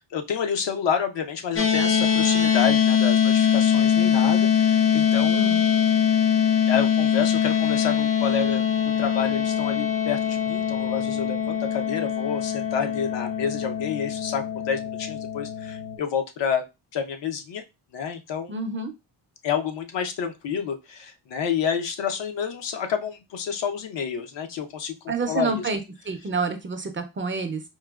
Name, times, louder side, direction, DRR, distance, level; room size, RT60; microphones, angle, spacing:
voice 1, 0.0-5.4 6.7-8.7 9.0-16.6 16.9-17.6 17.9-18.5 19.4-24.9 25.3-25.7, left 7 dB, 75° left, 6 dB, 0.7 m, -29 dB
sound 1, 1.6-16.0, left 8 dB, 30° left, 0.6 m, -22 dB
voice 2, 5.3-5.7 18.5-18.9 25.1-25.8 26.1-27.6, right 4 dB, 30° right, 6 dB, 0.4 m, -28 dB
4.6 x 2.1 x 2.3 m, 0.24 s
cardioid pair, 120°, 44 cm